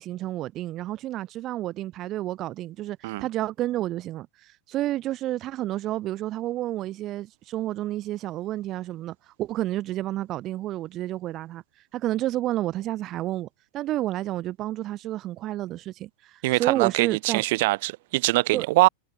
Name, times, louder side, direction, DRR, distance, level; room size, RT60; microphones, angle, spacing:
voice 1, 0.0-11.6 11.9-13.5 13.7-17.4 18.5-18.7, right 14 dB, 35° right, 7.0 m, -30 dB
voice 2, 16.4-18.9, right 21 dB, 50° right, 6.3 m, -23 dB
figure-of-eight pair, 90°, 0 cm